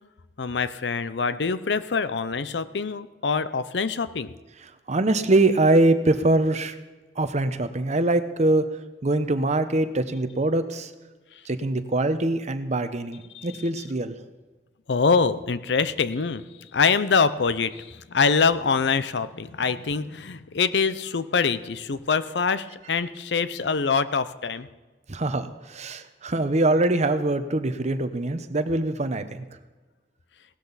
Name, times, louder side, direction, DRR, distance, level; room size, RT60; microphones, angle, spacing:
voice 1, 0.4-4.3 13.3-13.8 14.9-16.4 16.7-24.7, left 5 dB, 75° left, 14 dB, 0.6 m, -24 dB
voice 2, 4.9-6.8 7.2-8.6 9.0-10.9 11.5-14.1 16.9-17.0 22.8-22.9 25.1-29.4, right 2 dB, 40° right, 10 dB, 0.9 m, -23 dB
17.5 x 12.5 x 4.1 m, 1.3 s
head